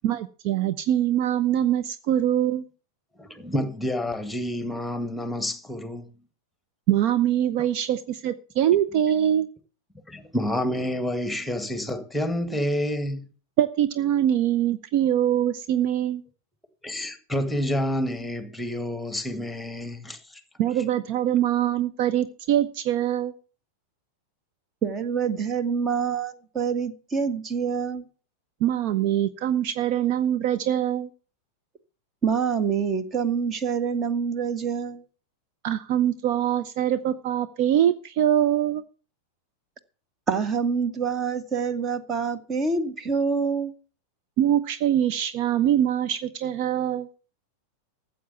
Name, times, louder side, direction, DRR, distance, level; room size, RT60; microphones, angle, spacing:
voice 1, 0.0-2.7 6.9-9.5 13.6-16.2 20.6-23.3 28.6-31.1 35.6-38.8 44.4-47.1, right 11 dB, 45° right, 0.7 m, -23 dB
voice 2, 3.2-6.1 10.1-13.3 16.8-20.4, equal, ahead, 1.9 m, -29 dB
voice 3, 24.8-28.0 32.2-35.0 40.3-43.7, right 6 dB, 25° right, 1.5 m, -26 dB
14.0 x 7.9 x 7.1 m
figure-of-eight pair, 90°, 0 cm